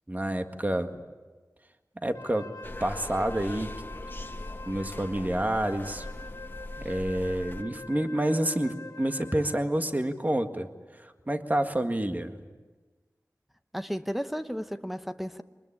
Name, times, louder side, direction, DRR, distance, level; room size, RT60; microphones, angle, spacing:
voice 1, 0.1-1.0 2.0-2.5 2.8-3.7 4.7-6.1 6.8-10.7 11.0-12.3, right 1 dB, 25° right, 6 dB, 1.8 m, -28 dB
Wind instrument woodwind instrument, 2.1-9.8, left 3 dB, 70° left, 2.3 m, -45 dB
sound 1, 2.6-7.6, left 1 dB, 30° left, 1.3 m, -40 dB
voice 2, 13.7-15.4, equal, ahead, 8 dB, 1.0 m, -33 dB
24.0 x 21.0 x 10.0 m, 1.3 s
wide cardioid pair, 65°, 6 cm